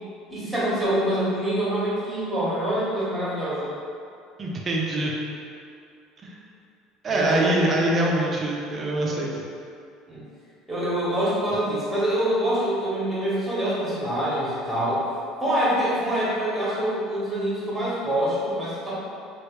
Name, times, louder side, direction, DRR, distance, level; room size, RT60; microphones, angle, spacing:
voice 1, 0.3-3.7 7.1-7.9 10.1-10.2 10.7-15.0 15.4-18.9, right 1 dB, 10° right, -9 dB, 1.2 m, -25 dB
voice 2, 4.4-5.1 6.2-6.4 7.0-9.4, right 1 dB, 30° right, -2 dB, 0.5 m, -24 dB
3.2 x 2.5 x 3.1 m, 2.4 s
cardioid pair, 130°, 0 cm